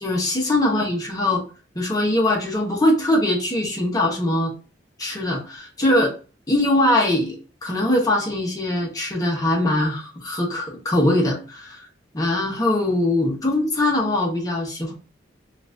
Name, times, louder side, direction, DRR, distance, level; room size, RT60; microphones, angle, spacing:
voice 1, 0.0-1.4 1.7-4.5 5.0-6.1 6.5-7.4 7.6-11.8 12.1-14.9, left 1 dB, 20° left, -2 dB, 1.0 m, -21 dB
4.0 x 2.6 x 2.5 m, 0.35 s
head